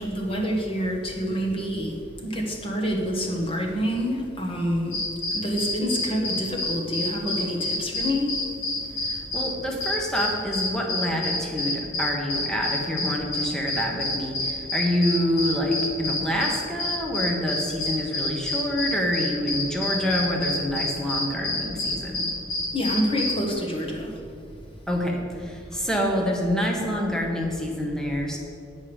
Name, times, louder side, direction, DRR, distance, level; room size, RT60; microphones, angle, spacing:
voice 1, 0.0-5.0 5.3-8.5 22.7-24.2, equal, 30° left, 0 dB, 1.4 m, -27 dB
sound 1, 4.9-9.5 9.8-23.5, left 2 dB, 85° left, 2.0 m, -28 dB
voice 2, 9.0-22.3 24.9-28.4, equal, 5° left, 0 dB, 1.1 m, -27 dB
8.7 x 5.3 x 7.0 m, 2.5 s
head